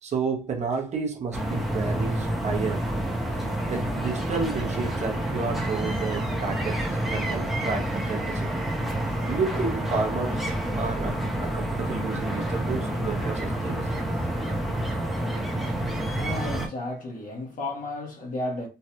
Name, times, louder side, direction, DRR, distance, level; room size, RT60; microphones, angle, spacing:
voice 1, 0.0-2.9 3.7-8.6 9.2-10.5 10.7-13.9, right 4 dB, 40° right, 0.9 m, -31 dB
sound 1, 1.3-16.7, right 1 dB, ahead, 0.7 m, -28 dB
voice 2, 15.5-18.7, left 2 dB, 50° left, 1.2 m, -34 dB
3.2 x 2.3 x 2.8 m
cardioid pair, 110°, 17 cm